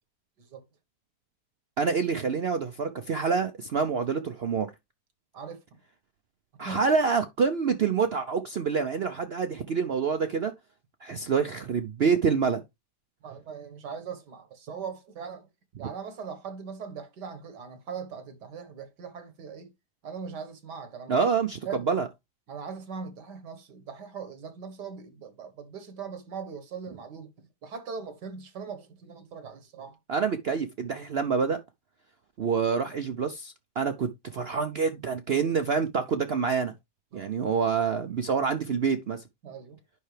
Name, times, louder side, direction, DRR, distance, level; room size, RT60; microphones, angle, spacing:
voice 1, 1.8-4.7 6.6-10.5 11.0-12.6 15.8-15.9 21.1-21.6 21.9-22.1 30.1-31.6 32.4-36.7 37.1-39.2, right 5 dB, 60° right, 0.6 m, -27 dB
voice 2, 13.2-15.5 15.8-19.7 20.0-21.2 21.6-21.9 22.5-27.3 27.6-30.0 37.1-37.4 39.4-39.8, right 6 dB, 75° right, 2.0 m, -40 dB
9.6 x 5.7 x 3.2 m
omnidirectional pair, 1.8 m